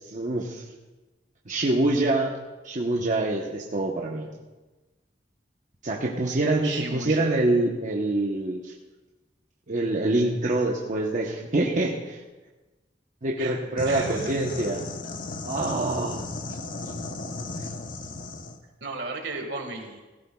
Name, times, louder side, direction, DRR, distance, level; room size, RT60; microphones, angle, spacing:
voice 1, 0.1-0.6 1.5-2.3 2.6-4.3 5.8-8.7 9.7-12.2 13.2-14.8 15.4-16.2 17.6-17.7, right 2 dB, 45° right, -2 dB, 1.0 m, -25 dB
voice 2, 6.6-7.4 13.4-13.6 13.8-14.4 18.8-20.0, right 3 dB, 70° right, 3 dB, 1.8 m, -34 dB
sound 1, 13.8-18.6, left 3 dB, 50° left, 0.9 m, -35 dB
17.0 x 15.0 x 2.3 m, 1.2 s
head